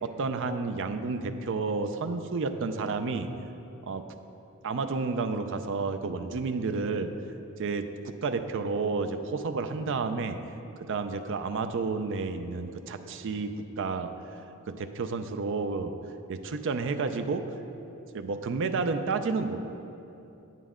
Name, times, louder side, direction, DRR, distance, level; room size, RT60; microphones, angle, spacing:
voice 1, 0.0-3.3 3.9-4.0 4.6-7.1 7.6-10.4 10.8-14.1 14.7-15.9 16.3-17.5 18.1-19.6, right 4 dB, 60° right, 8 dB, 0.5 m, -31 dB
9.2 x 9.2 x 3.7 m, 2.9 s
head